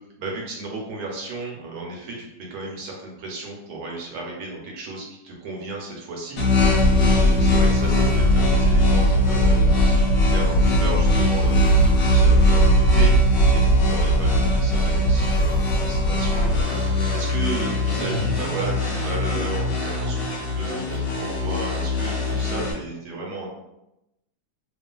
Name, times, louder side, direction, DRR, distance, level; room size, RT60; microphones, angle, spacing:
voice 1, 0.2-10.0 10.3-23.5, right 2 dB, 75° right, -1 dB, 1.2 m, -34 dB
sound 1, 6.4-22.7, left 3 dB, 70° left, 0.9 m, -24 dB
sound 2, 6.6-16.6, right 1 dB, 85° left, 1.2 m, -19 dB
Fart, 16.3-22.4, right 1 dB, 55° right, 0.6 m, -40 dB
2.7 x 2.4 x 2.2 m, 0.89 s
omnidirectional pair, 1.8 m